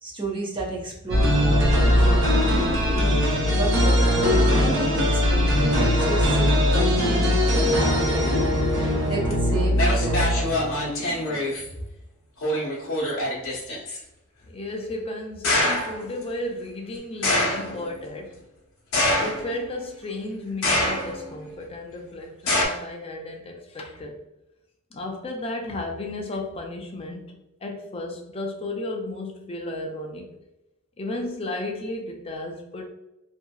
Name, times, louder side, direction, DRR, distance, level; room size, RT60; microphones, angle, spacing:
voice 1, 0.0-11.4, right 2 dB, 20° right, -3 dB, 0.6 m, -33 dB
sound 1, 1.1-10.9, equal, 55° right, 0.8 m, -20 dB
sound 2, 9.3-9.4 9.8-11.7 12.4-14.0 15.4-16.0 17.2-17.8 18.9-19.7 20.6-21.3 22.5-22.7, left 1 dB, 60° left, 0.8 m, -24 dB
voice 2, 14.5-18.4 19.1-24.2 24.9-30.3 31.0-32.8, left 2 dB, 25° left, 2 dB, 0.4 m, -34 dB
2.8 x 2.6 x 2.2 m, 0.91 s
head